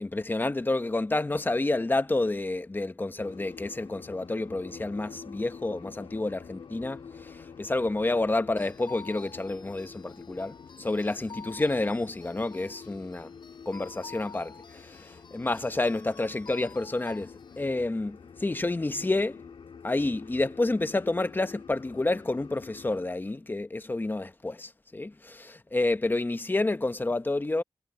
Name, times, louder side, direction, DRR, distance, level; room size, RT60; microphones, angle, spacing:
voice 1, 0.0-13.3 13.7-19.4 19.8-27.6, left 2 dB, 20° left, 0.9 m, -29 dB
sound 1, 3.2-23.1, left 6 dB, 80° left, 1.8 m, -48 dB
sound 2, 8.6-17.6, left 5 dB, 60° left, 7.3 m, -49 dB
wide cardioid pair, 115°, 9 cm